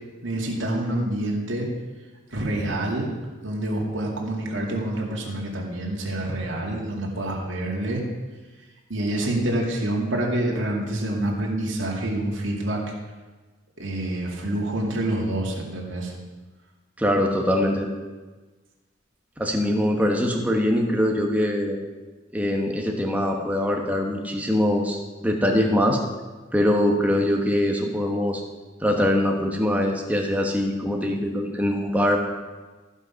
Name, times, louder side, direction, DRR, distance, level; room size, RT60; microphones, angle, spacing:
voice 1, 0.2-1.7 2.3-3.1 3.4-8.0 8.9-12.8 13.8-16.1, right 1 dB, 75° right, -2 dB, 2.3 m, -27 dB
voice 2, 17.0-17.9 19.4-21.8 22.3-26.0 26.5-28.4 28.8-32.2, left 1 dB, 10° right, 1 dB, 1.1 m, -23 dB
14.5 x 5.6 x 5.7 m, 1.3 s
head